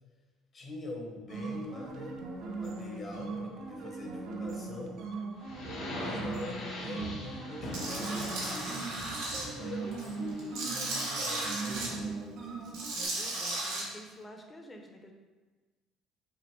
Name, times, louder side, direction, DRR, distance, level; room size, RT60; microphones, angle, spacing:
voice 1, 0.5-2.2 2.6-5.0 5.9-9.1 9.6-12.8, left 2 dB, 40° left, 0 dB, 1.0 m, -43 dB
sound 1, 1.3-13.1, right 4 dB, 65° right, 0.5 m, -40 dB
sound 2, 5.4-12.1, left 1 dB, 70° left, 1.2 m, -43 dB
Tools, 7.7-9.4 9.9-11.9 12.7-13.8, right 2 dB, 85° right, 1.0 m, -35 dB
voice 2, 12.9-15.1, equal, 20° left, 3 dB, 0.7 m, -49 dB
5.3 x 2.5 x 3.3 m, 1.3 s
supercardioid pair, 80°, 0 cm